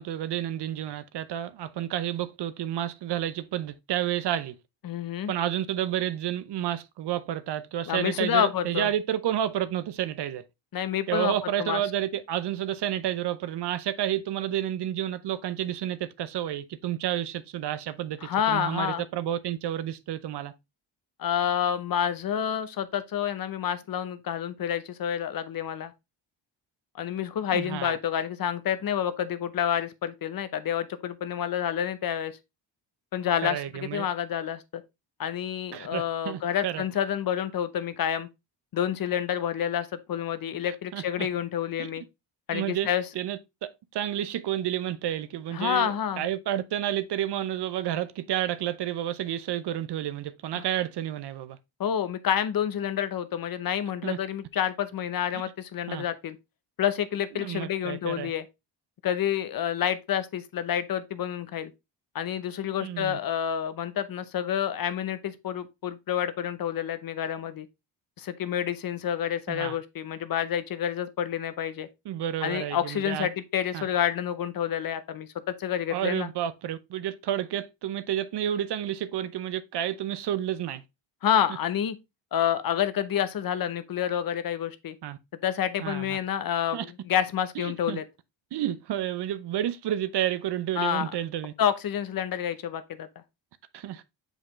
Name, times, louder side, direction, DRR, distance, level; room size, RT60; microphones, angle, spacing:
voice 1, 0.0-4.6 5.3-10.4 11.1-20.5 27.5-28.0 33.4-34.1 35.7-36.8 40.6-41.3 41.8-41.9 42.5-42.9 43.1-43.4 43.9-51.6 54.0-54.2 55.9-56.1 57.3-58.3 62.8-63.2 69.5-69.8 72.0-73.3 73.7-73.9 75.9-80.8 85.0-85.2 85.8-86.2 86.7-86.9 87.6-88.0 88.5-91.5 93.7-94.0, right 11 dB, 60° right, 0.7 m, -30 dB
voice 2, 4.8-5.3 7.9-8.9 10.7-11.3 11.6-11.8 18.2-19.0 21.2-25.9 26.9-32.4 33.1-34.8 35.2-38.3 38.7-42.0 42.5-43.0 45.5-46.2 50.5-50.6 51.8-56.4 56.8-58.4 59.0-61.7 62.1-67.7 68.2-71.9 72.4-76.3 81.2-81.9 82.3-85.0 85.4-88.0 90.8-91.1 91.6-93.1, left 9 dB, 50° left, 0.8 m, -28 dB
6.4 x 5.0 x 3.0 m
cardioid pair, 105°, 46 cm